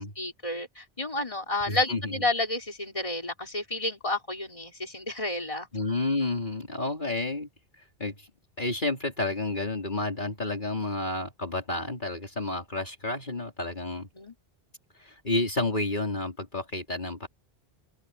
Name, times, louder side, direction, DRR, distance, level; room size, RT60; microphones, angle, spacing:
voice 1, 0.0-5.7 14.1-14.3, left 2 dB, 30° left, 4.5 m, -31 dB
voice 2, 1.7-2.2 5.7-7.5 8.0-8.3 8.6-14.1 15.0-17.3, left 2 dB, 50° left, 4.3 m, -30 dB
open air
omnidirectional pair, 1.0 m